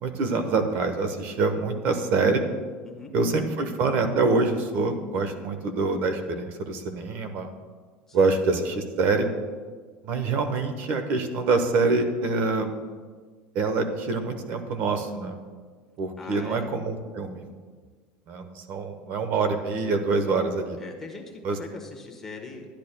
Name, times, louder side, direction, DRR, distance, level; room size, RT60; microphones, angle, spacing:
voice 1, 0.0-2.4 3.1-7.5 8.1-9.3 10.0-12.7 13.5-15.4 16.0-17.4 18.3-20.8 21.4-21.6, right 3 dB, 55° right, 7 dB, 1.0 m, -25 dB
voice 2, 2.8-3.1 8.1-8.3 16.2-16.7 20.8-22.7, left 3 dB, 10° left, 1 dB, 1.2 m, -41 dB
13.0 x 10.0 x 2.2 m, 1.5 s
cardioid pair, 145°, 4 cm